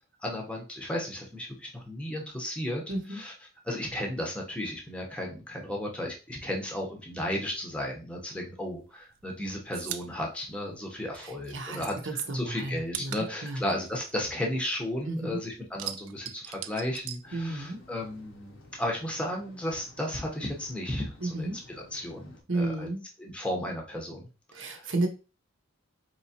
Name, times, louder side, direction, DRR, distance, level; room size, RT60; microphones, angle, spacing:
voice 1, 0.2-3.3 3.6-21.5 21.9-22.9 23.2-24.3 24.5-24.9, left 1 dB, 5° left, 0 dB, 0.8 m, -34 dB
voice 2, 2.9-3.2 11.2-13.6 15.0-15.4 17.3-17.8 21.2-21.6 22.5-23.0 24.5-25.1, right 2 dB, 60° right, 4 dB, 0.8 m, -32 dB
sound 1, 8.7-11.5 11.8-15.1 15.4-18.0 18.2-19.4, right 12 dB, 85° right, 0.4 m, -41 dB
sound 2, 17.2-22.4, left 2 dB, 60° left, 0.8 m, -54 dB
4.6 x 3.0 x 2.8 m, 0.32 s
head